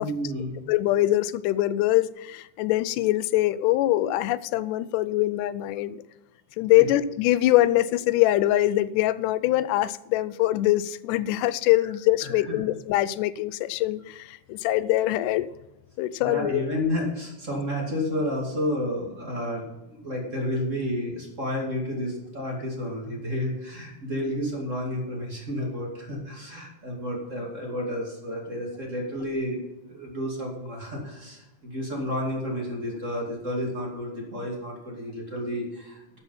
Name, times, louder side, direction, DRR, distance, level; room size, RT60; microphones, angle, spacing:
voice 1, 0.0-0.7 6.8-6.9 12.2-12.6 16.2-29.6 29.9-36.2, left 1 dB, 25° right, -1 dB, 2.5 m, -31 dB
voice 2, 0.7-6.0 6.6-15.5 16.0-16.6, left 15 dB, 90° left, 16 dB, 2.1 m, -23 dB
12.5 x 7.0 x 5.6 m, 0.96 s
omnidirectional pair, 3.6 m